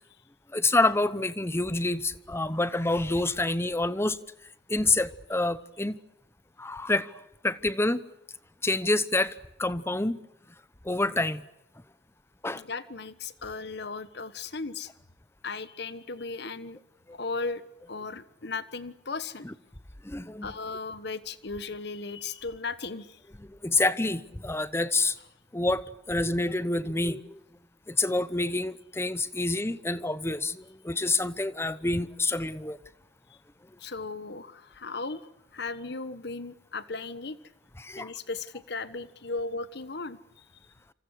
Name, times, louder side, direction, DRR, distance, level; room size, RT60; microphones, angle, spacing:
voice 1, 0.5-4.2 4.7-6.0 6.6-7.1 7.4-8.0 8.6-10.2 10.8-11.4 12.4-12.6 17.1-17.2 19.4-19.5 20.0-20.5 23.4-25.2 25.5-27.4 27.9-32.8 37.8-38.1, left 2 dB, 15° left, 0.9 m, -27 dB
voice 2, 12.5-14.9 15.4-16.8 17.1-17.6 17.9-19.5 20.4-23.2 33.8-35.2 35.5-37.4 38.0-40.4, left 4 dB, 65° left, 1.3 m, -36 dB
27.5 x 27.0 x 6.5 m
head